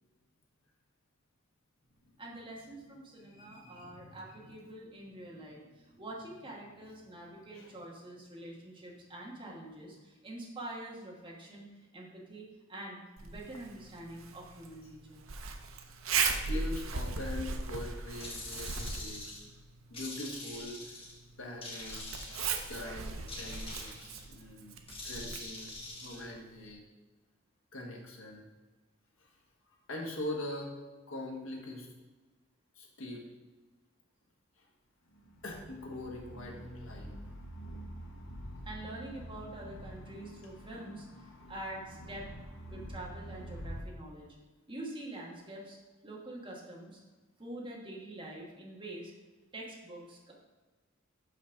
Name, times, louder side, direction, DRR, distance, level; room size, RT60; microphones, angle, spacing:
voice 1, 2.2-5.6 6.0-11.7 11.9-15.2 38.6-41.0 41.5-42.3 42.7-44.3 44.7-45.8 46.0-47.0 47.4-49.1 49.5-50.3, right 1 dB, 25° right, -3 dB, 1.5 m, -45 dB
voice 2, 3.1-4.6 5.3-6.0 7.1-7.2 7.5-7.8 16.5-19.5 19.9-21.0 21.4-22.2 22.6-24.8 25.0-26.8 27.7-28.4 29.2-29.3 29.7-30.7 31.1-31.9 32.7-33.2 34.6-34.7 35.4-37.1, left 1 dB, 80° left, -1 dB, 1.5 m, -43 dB
Zipper (clothing), 13.2-26.7, right 5 dB, 75° right, 0.7 m, -39 dB
sound 1, 18.2-19.5 19.9-21.2 21.6-22.9 23.3-24.3 24.9-26.2, left 2 dB, 25° left, 1.3 m, -44 dB
sound 2, 35.1-43.8, right 1 dB, 65° left, 0.9 m, -46 dB
5.7 x 4.3 x 5.8 m, 1.3 s
head